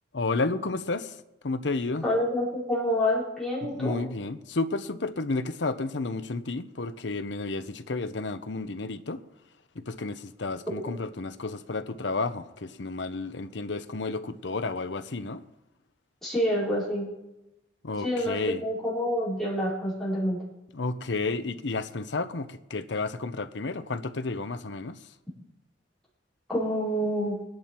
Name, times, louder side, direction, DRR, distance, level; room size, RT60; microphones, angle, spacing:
voice 1, 0.1-1.1 1.4-2.1 3.7-9.2 9.7-15.4 17.8-18.6 20.7-25.0, left 3 dB, 70° left, 0.8 m, -31 dB
voice 2, 2.0-4.0 16.2-17.1 18.0-20.4 26.5-27.4, equal, ahead, 4.4 m, -27 dB
22.0 x 10.5 x 4.5 m
head